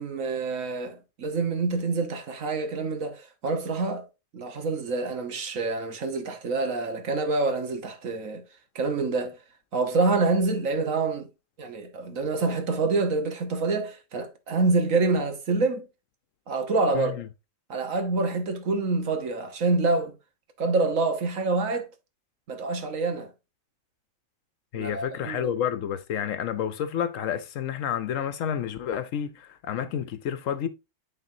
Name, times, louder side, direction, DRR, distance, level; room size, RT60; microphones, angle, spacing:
voice 1, 0.0-4.0 4.3-8.4 8.7-9.4 9.7-11.3 11.6-15.9 16.5-17.2 17.7-20.1 20.6-21.9 22.5-23.3 24.7-25.5, right 3 dB, 85° right, 1.6 m, -26 dB
voice 2, 16.9-17.2 24.7-30.7, left 9 dB, 80° left, 1.1 m, -30 dB
11.0 x 3.8 x 2.7 m
omnidirectional pair, 1.3 m